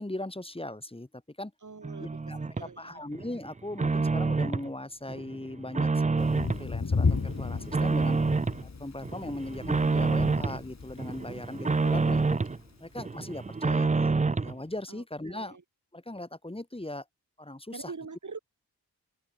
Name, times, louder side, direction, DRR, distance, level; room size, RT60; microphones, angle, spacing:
voice 1, 0.0-1.5 2.0-8.2 8.6-12.2 12.8-15.6 15.9-17.0 17.4-17.9, left 1 dB, 15° left, 5.1 m, -39 dB
voice 2, 1.6-2.2 2.6-3.0 11.3-11.4 14.9-15.6 17.7-18.4, right 4 dB, 50° right, 6.0 m, -44 dB
sound 1, 1.8-2.7 3.1-4.7 5.1-6.7 7.1-8.6 9.0-10.6 11.0-12.6 13.0-14.6, right 3 dB, 20° right, 0.6 m, -28 dB
Thunder, 6.2-13.0, left 4 dB, 45° left, 4.1 m, -34 dB
open air
wide cardioid pair, 105°, 39 cm